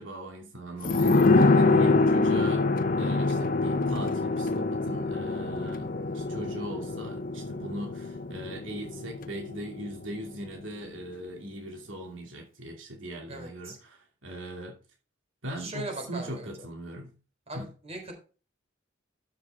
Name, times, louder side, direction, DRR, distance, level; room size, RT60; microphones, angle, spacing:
voice 1, 0.0-2.7 3.0-5.9 6.1-14.8 15.4-17.1 17.5-17.7, right 1 dB, 85° right, 2.6 m, -39 dB
sound 1, 0.8-10.1 10.4-10.5, left 3 dB, 50° left, 0.9 m, -25 dB
voice 2, 13.3-13.8 15.6-16.7 17.5-18.2, right 2 dB, 35° right, 4.0 m, -40 dB
13.0 x 6.7 x 3.5 m
head